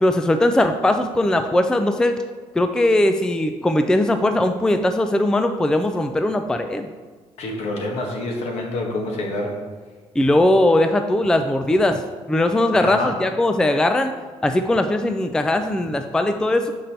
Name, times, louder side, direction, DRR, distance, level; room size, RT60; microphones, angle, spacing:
voice 1, 0.0-2.2 2.5-6.9 10.2-12.0 12.3-14.1 14.4-16.7, left 1 dB, 5° left, 7 dB, 0.3 m, -19 dB
voice 2, 7.4-9.6 12.8-13.2, left 2 dB, 65° left, 0 dB, 1.6 m, -27 dB
6.6 x 5.4 x 4.3 m, 1.4 s
cardioid pair, 120°, 12 cm